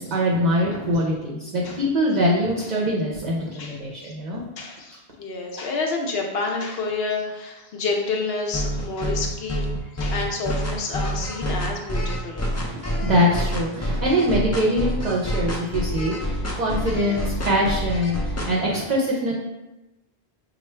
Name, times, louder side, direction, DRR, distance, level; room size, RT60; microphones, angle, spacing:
voice 1, 0.0-4.4 13.0-18.2 18.5-19.3, equal, 45° right, -4 dB, 0.7 m, -23 dB
voice 2, 4.6-9.7 9.9-12.4 16.5-16.6, left 3 dB, 75° left, 1 dB, 0.9 m, -29 dB
sound 1, 8.5-18.5, equal, 25° left, 0.4 m, -27 dB
5.5 x 2.4 x 3.2 m, 1.0 s
omnidirectional pair, 1.0 m